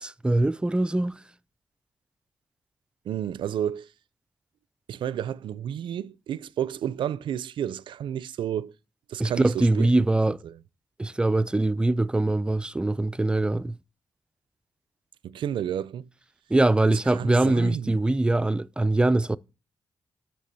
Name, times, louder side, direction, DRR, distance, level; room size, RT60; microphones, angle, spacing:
voice 1, 0.0-1.2 9.2-10.4 11.0-13.8 16.5-19.4, right 2 dB, 10° right, 0.3 m, -23 dB
voice 2, 3.1-3.9 4.9-8.7 9.1-9.9 10.4-10.6 15.2-16.1 16.9-18.0, right 10 dB, 85° right, 0.4 m, -31 dB
9.6 x 3.3 x 6.7 m
cardioid pair, 80°, 8 cm